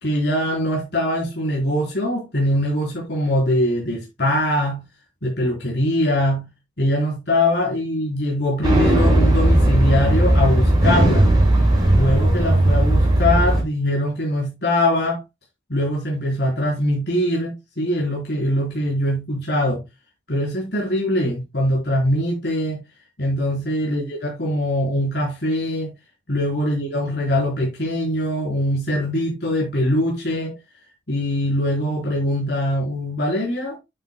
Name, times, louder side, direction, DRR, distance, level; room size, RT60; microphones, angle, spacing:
voice 1, 0.0-4.8 5.2-6.5 6.8-11.3 11.9-15.2 15.7-19.8 20.3-22.8 23.2-25.9 26.3-30.6 31.1-33.8, left 1 dB, 60° left, 4.2 m, -22 dB
sound 1, 8.6-13.6, right 1 dB, 20° right, 4.6 m, -16 dB
9.4 x 9.4 x 2.2 m
head